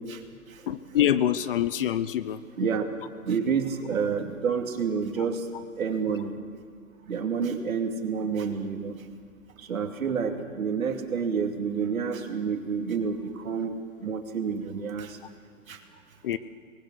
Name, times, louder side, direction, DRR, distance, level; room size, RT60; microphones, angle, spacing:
voice 1, 0.7-2.4 16.2-16.4, left 11 dB, 40° left, 15 dB, 0.7 m, -25 dB
voice 2, 2.6-2.9 3.3-5.4 5.8-6.4 7.1-8.9 9.6-13.7 14.0-15.2 15.7-15.8, right 6 dB, 70° right, 4 dB, 2.7 m, -29 dB
24.5 x 20.0 x 6.4 m, 2.1 s
hypercardioid pair, 140°, 43 cm